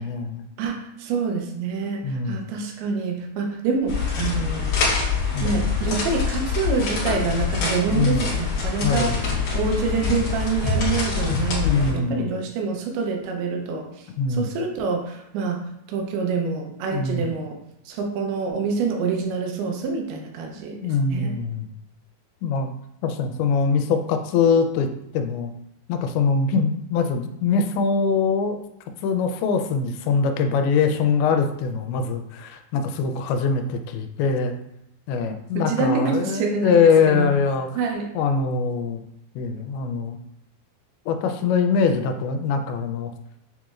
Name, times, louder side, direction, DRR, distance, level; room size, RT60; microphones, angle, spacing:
voice 1, 0.0-0.4 2.0-2.4 5.3-5.5 7.9-8.2 8.8-9.3 11.6-12.3 14.2-14.5 16.9-17.3 20.8-21.7 22.4-22.7 23.0-24.9 25.1-25.5 25.9-28.6 29.0-34.6 35.1-37.7 38.1-39.1 39.4-40.2 41.1-43.1, left 5 dB, 85° left, 6 dB, 2.4 m, -22 dB
voice 2, 0.6-4.8 5.4-9.2 9.5-17.6 17.9-20.8 21.1-21.3 35.6-37.3 37.8-38.1, right 5 dB, 90° right, 2 dB, 2.7 m, -26 dB
sound 1, 3.9-11.9, left 5 dB, 55° left, 2.2 m, -25 dB
7.3 x 3.0 x 2.4 m, 0.83 s
omnidirectional pair, 4.4 m